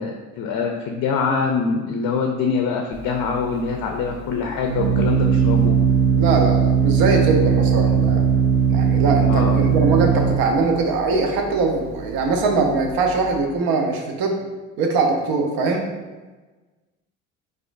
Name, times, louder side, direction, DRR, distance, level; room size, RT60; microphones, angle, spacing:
voice 1, 0.0-5.7 9.3-9.6, left 5 dB, 50° left, 3 dB, 0.5 m, -24 dB
Organ, 2.9-13.4, right 6 dB, 25° right, 0.4 m, -20 dB
voice 2, 6.2-8.2 8.7-14.4 14.8-15.8, right 3 dB, 60° right, 2 dB, 0.8 m, -21 dB
4.2 x 2.5 x 2.5 m, 1.3 s
hypercardioid pair, 70°, 40 cm